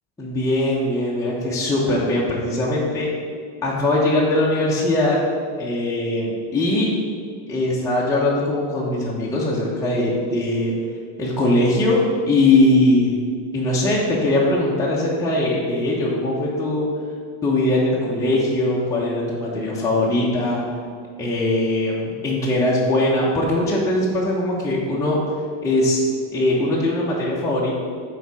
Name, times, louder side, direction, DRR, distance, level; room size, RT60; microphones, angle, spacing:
voice 1, 0.2-3.1 3.6-5.2 5.6-6.9 7.5-10.7 11.2-13.2 13.5-16.9 17.4-20.6 21.2-25.2 25.6-26.0 26.3-27.7, left 1 dB, 5° left, -6 dB, 0.9 m, -20 dB
6.9 x 4.2 x 4.8 m, 2.1 s
supercardioid pair, 130°, 49 cm